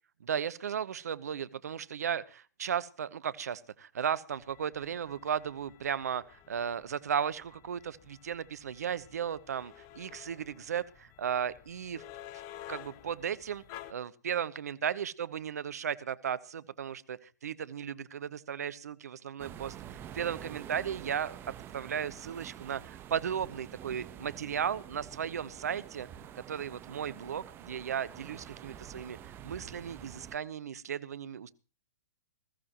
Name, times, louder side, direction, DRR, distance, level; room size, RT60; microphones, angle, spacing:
voice 1, 0.2-12.0 12.7-13.6 13.9-21.4 21.7-26.1 26.3-29.2 29.4-31.5, right 8 dB, 65° right, 16 dB, 1.0 m, -35 dB
sound 1, 4.3-13.9, left 13 dB, 35° left, 1.1 m, -52 dB
sound 2, 19.4-30.4, right 10 dB, 25° right, 1.1 m, -47 dB
20.5 x 14.5 x 3.0 m, 0.34 s
figure-of-eight pair, 115°, 9 cm